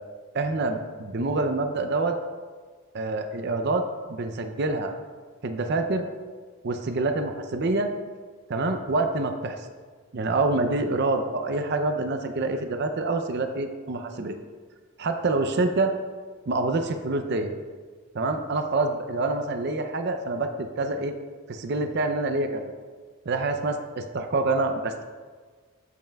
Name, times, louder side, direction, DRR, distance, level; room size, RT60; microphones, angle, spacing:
voice 1, 0.3-2.2 2.9-3.8 4.1-5.0 5.4-6.0 6.6-7.9 8.5-9.6 10.1-14.4 15.0-15.9 16.5-17.5 18.1-21.2 21.5-22.7 23.3-25.0, right 2 dB, 50° right, 7 dB, 0.5 m, -26 dB
12.5 x 5.5 x 2.3 m, 1.5 s
head